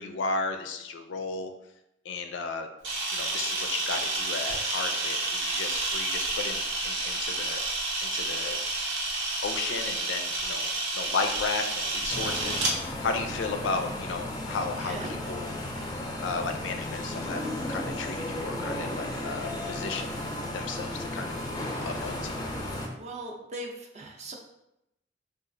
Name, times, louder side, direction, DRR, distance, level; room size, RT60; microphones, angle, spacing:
voice 1, 0.0-1.5 2.0-2.7 3.1-7.6 8.0-8.6 9.4-12.7 13.0-15.0 15.3-15.5 16.2-20.2 20.5-21.6 21.8-22.5, left 4 dB, 85° left, 6 dB, 0.4 m, -34 dB
Camera, 2.8-12.7, right 2 dB, 90° right, 0.7 m, -30 dB
sound 1, 12.1-22.9, left 1 dB, 20° left, 0.4 m, -34 dB
voice 2, 14.8-15.3 15.6-16.0 22.9-24.3, right 1 dB, 40° right, 0 dB, 0.4 m, -40 dB
3.9 x 2.3 x 2.5 m, 0.84 s
head